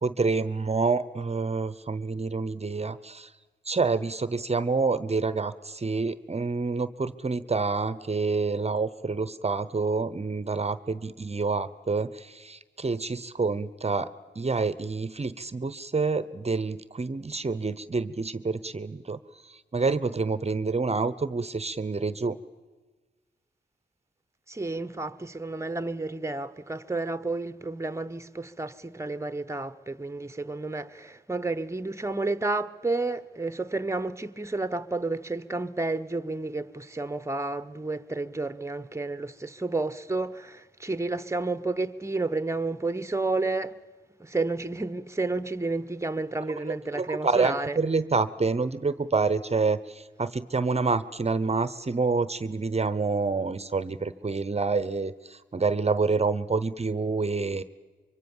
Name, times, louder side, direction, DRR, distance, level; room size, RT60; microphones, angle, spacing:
voice 1, 0.0-3.3 3.7-14.1 14.4-22.4 46.9-57.6, right 4 dB, 35° right, 0.9 m, -28 dB
voice 2, 24.5-43.8 44.2-47.8, right 3 dB, 15° right, 1.0 m, -31 dB
24.5 x 24.0 x 7.3 m
cardioid pair, 75°, 19 cm